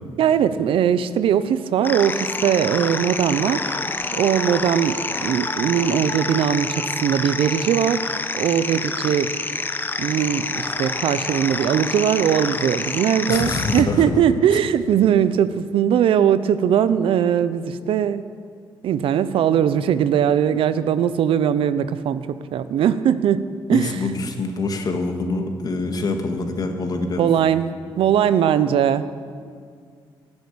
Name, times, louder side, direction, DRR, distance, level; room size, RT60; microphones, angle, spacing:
voice 1, 0.2-3.9 4.1-9.3 10.0-18.3 18.8-24.0 27.2-27.7 28.0-29.0, right 9 dB, 80° right, 14 dB, 0.7 m, -20 dB
sound 1, 1.8-13.8, left 3 dB, 20° left, 0.9 m, -27 dB
voice 2, 13.3-14.2 23.7-27.3, left 3 dB, 45° left, 5 dB, 1.8 m, -25 dB
13.0 x 11.0 x 8.6 m, 2.1 s
cardioid pair, 105°, 9 cm